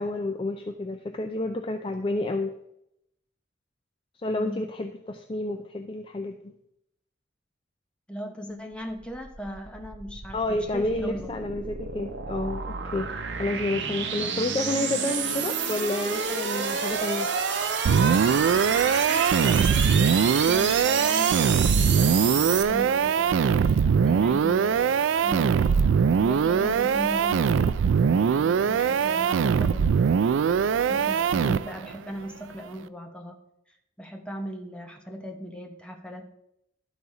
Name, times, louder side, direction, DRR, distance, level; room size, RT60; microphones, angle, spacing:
voice 1, 0.0-2.5 4.2-6.5 10.3-17.3, left 2 dB, 25° left, 5 dB, 0.4 m, -30 dB
voice 2, 4.3-4.7 8.1-11.3 14.2-14.3 18.8-23.8 24.0-25.7 26.2-27.7 28.1-30.2 30.9-33.4 34.0-36.4, equal, 5° left, 3 dB, 0.8 m, -38 dB
sound 1, 8.9-22.6, right 6 dB, 70° right, 0.8 m, -29 dB
sound 2, 17.9-31.9, right 6 dB, 90° right, 0.3 m, -22 dB
12.0 x 4.0 x 4.8 m, 0.80 s
head